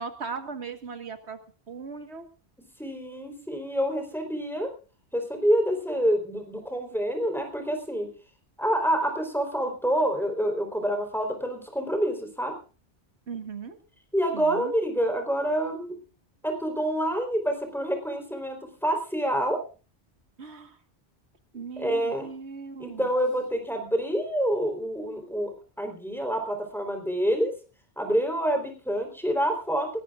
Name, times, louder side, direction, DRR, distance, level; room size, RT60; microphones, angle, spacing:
voice 1, 0.0-1.4 1.7-2.3 13.3-13.8 14.3-14.7 20.4-20.8 21.5-23.1, right 5 dB, 90° right, 8 dB, 1.8 m, -38 dB
voice 2, 2.8-4.7 5.1-8.1 8.6-12.5 14.1-15.9 16.4-19.6 21.8-22.3 22.8-25.5 25.8-27.5 28.0-29.9, right 1 dB, ahead, 3 dB, 3.9 m, -27 dB
22.0 x 18.5 x 2.5 m, 0.36 s
omnidirectional pair, 1.1 m